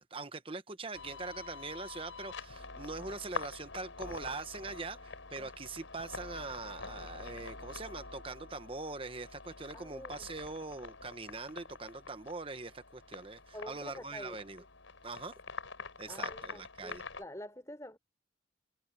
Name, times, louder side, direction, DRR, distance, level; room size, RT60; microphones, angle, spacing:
voice 1, 0.0-14.6 15.0-15.3 16.0-17.0, right 3 dB, 30° right, 1.1 m, -42 dB
sound 1, 0.9-17.2, left 4 dB, 90° left, 6.0 m, -46 dB
voice 2, 9.7-10.3 13.5-14.4 16.1-18.0, left 1 dB, 15° left, 3.6 m, -47 dB
head